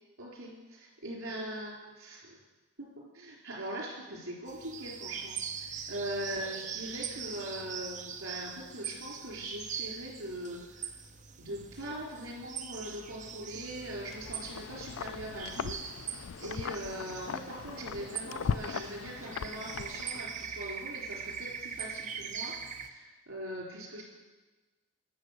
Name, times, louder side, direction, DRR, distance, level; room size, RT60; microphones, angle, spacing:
voice 1, 0.2-2.4 2.8-11.0 11.4-15.8 16.4-24.0, right 1 dB, 75° right, -2 dB, 4.3 m, -41 dB
sound 1, 4.5-22.9, right 7 dB, 35° right, 0.9 m, -42 dB
Wind, 13.9-20.4, left 6 dB, 75° left, 0.4 m, -39 dB
21.0 x 7.2 x 6.7 m, 1.2 s
head